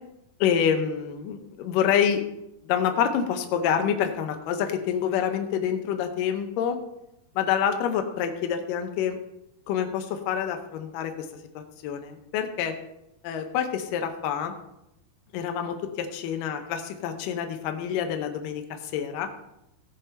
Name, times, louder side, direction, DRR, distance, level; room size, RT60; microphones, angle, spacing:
voice 1, 0.4-2.2 2.6-6.8 7.4-9.2 9.7-11.3 11.6-12.7 13.2-14.5 15.3-19.3, left 8 dB, 80° left, 5 dB, 1.9 m, -27 dB
16.0 x 5.4 x 4.3 m, 0.87 s
omnidirectional pair, 4.9 m